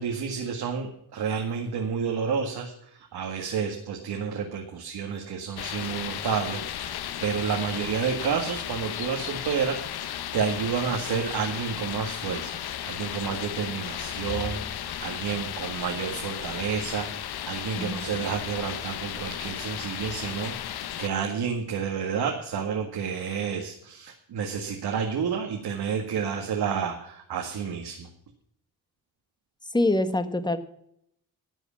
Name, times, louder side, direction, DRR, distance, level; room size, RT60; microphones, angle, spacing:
voice 1, 0.0-28.1, right 6 dB, 85° right, 2 dB, 1.9 m, -30 dB
sound 1, 5.6-21.1, left 11 dB, 80° left, 0.9 m, -34 dB
voice 2, 29.7-30.6, left 2 dB, 10° left, 10 dB, 1.4 m, -24 dB
12.5 x 8.1 x 7.1 m, 0.73 s
cardioid pair, 100°, 37 cm